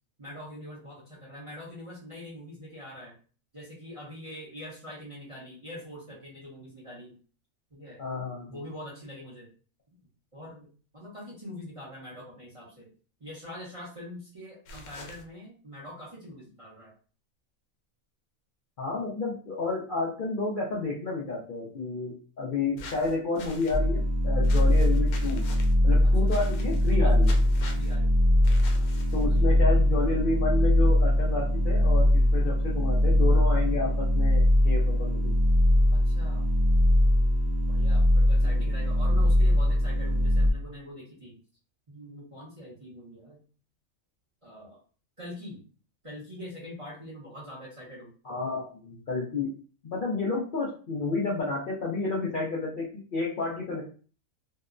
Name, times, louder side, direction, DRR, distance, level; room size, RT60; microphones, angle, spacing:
voice 1, 0.2-3.1 3.5-7.1 7.7-8.0 8.5-9.5 10.3-10.7 10.9-12.9 13.2-16.9 26.0-26.3 26.9-27.2 27.6-28.1 29.3-29.5 35.9-36.5 37.7-41.3 41.9-43.4 44.4-44.8 45.2-45.6 46.0-48.1, left 1 dB, 30° right, -6 dB, 0.6 m, -44 dB
voice 2, 8.0-8.6 18.8-25.5 25.8-27.4 29.1-33.9 34.1-35.3 38.5-38.7 48.2-49.5 49.8-52.9 53.1-53.8, left 3 dB, 55° left, -5 dB, 0.6 m, -30 dB
sound 1, 14.6-15.2 22.8-23.8 24.4-25.7 26.3-27.0 27.2-27.9 28.4-29.4, left 2 dB, 90° left, 1.0 m, -44 dB
sound 2, 23.7-40.5, left 1 dB, 75° right, 0.4 m, -22 dB
2.8 x 2.0 x 2.4 m, 0.39 s
omnidirectional pair, 1.4 m